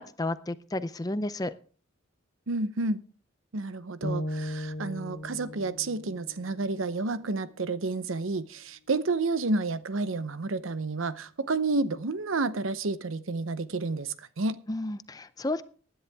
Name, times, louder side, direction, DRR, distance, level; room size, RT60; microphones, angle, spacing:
voice 1, 0.0-1.5 14.7-15.6, left 2 dB, 20° left, 0.5 m, -32 dB
voice 2, 2.5-3.0 3.5-14.6, right 3 dB, 75° right, 0.8 m, -30 dB
sound 1, 4.0-8.2, equal, 60° left, 2.3 m, -38 dB
16.0 x 10.5 x 3.5 m
head